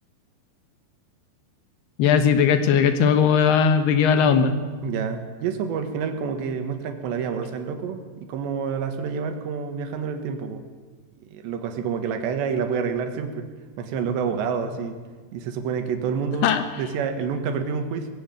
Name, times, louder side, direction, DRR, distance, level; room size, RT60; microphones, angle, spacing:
voice 1, 2.0-4.5 16.4-16.6, left 7 dB, 70° left, 9 dB, 3.1 m, -18 dB
voice 2, 4.8-10.6 11.3-13.5 13.8-15.0 15.3-18.1, right 6 dB, 75° right, 6 dB, 3.8 m, -28 dB
21.0 x 15.0 x 9.0 m, 1.5 s
omnidirectional pair, 5.3 m